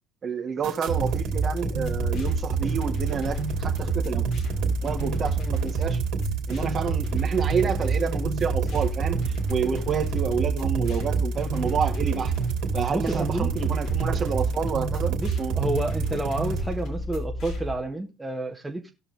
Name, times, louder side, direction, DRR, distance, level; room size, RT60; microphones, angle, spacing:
voice 1, 0.2-4.3 4.6-6.0 6.5-9.2 9.5-12.3 12.7-15.5, right 6 dB, 40° right, 1.9 m, -29 dB
sound 1, 0.6-16.6, right 7 dB, 70° right, 2.9 m, -28 dB
sound 2, 0.9-17.8, left 1 dB, 60° left, 2.8 m, -32 dB
voice 2, 12.9-13.5 15.2-18.9, right 1 dB, 10° right, 1.6 m, -30 dB
17.5 x 5.8 x 3.4 m
supercardioid pair, 85°, 0 cm